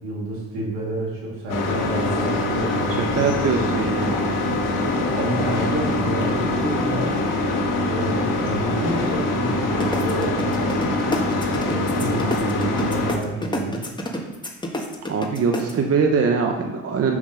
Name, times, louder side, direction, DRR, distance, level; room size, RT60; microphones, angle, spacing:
voice 1, 0.0-3.3 4.0-4.2 5.1-7.1 7.9-13.8, right 1 dB, 80° right, -3 dB, 2.4 m, -29 dB
sound 1, 1.5-13.2, left 2 dB, 70° left, 1.3 m, -23 dB
voice 2, 3.2-4.1 15.0-17.2, right 5 dB, 45° right, 3 dB, 0.9 m, -22 dB
sound 2, 9.8-15.7, left 1 dB, 15° left, 1.5 m, -28 dB
6.0 x 6.0 x 5.2 m, 1.1 s
hypercardioid pair, 55°, 32 cm